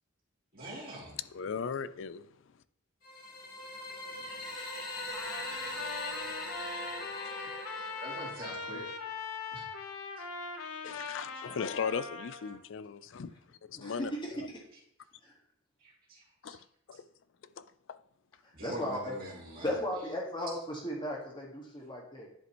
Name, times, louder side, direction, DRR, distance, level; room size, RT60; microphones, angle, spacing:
voice 1, 0.5-1.1 8.0-8.8 9.5-9.6 15.8-16.6 18.5-19.8, right 1 dB, 40° right, 2.8 m, -44 dB
voice 2, 1.3-2.3 4.2-4.5 5.6-5.9 7.2-7.3 10.8-14.5 16.4-17.0 17.6-18.0, left 6 dB, 60° left, 0.4 m, -38 dB
sound 1, 3.0-9.0, left 2 dB, 40° left, 1.9 m, -41 dB
Trumpet, 5.1-12.6, left 4 dB, 90° left, 0.9 m, -41 dB
voice 3, 13.7-14.6 15.2-15.3 18.4-19.1 19.6-22.3, equal, 20° left, 1.6 m, -36 dB
11.0 x 5.1 x 3.0 m
head